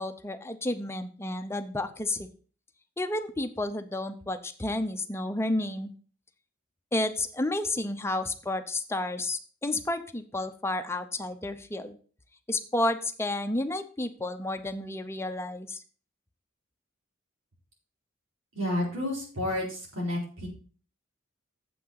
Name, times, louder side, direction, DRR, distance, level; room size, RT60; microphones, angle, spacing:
voice 1, 0.0-2.3 3.0-5.9 6.9-12.0 12.5-15.8, left 2 dB, 15° left, 7 dB, 0.7 m, -31 dB
voice 2, 18.5-20.5, left 1 dB, 80° right, -3 dB, 4.7 m, -30 dB
7.7 x 6.1 x 5.7 m, 0.41 s
head